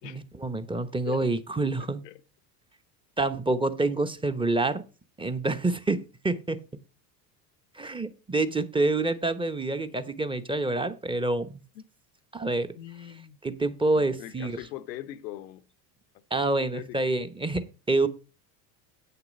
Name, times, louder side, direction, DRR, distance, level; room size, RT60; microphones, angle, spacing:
voice 1, 0.0-2.0 3.2-4.8 5.2-6.6 7.7-11.6 12.3-12.7 13.4-14.6 16.3-18.1, right 2 dB, 10° right, 0.9 m, -27 dB
voice 2, 12.7-13.4 14.2-15.7 16.3-17.1, left 14 dB, 90° left, 0.8 m, -41 dB
8.5 x 6.8 x 5.2 m
supercardioid pair, 85°, 48 cm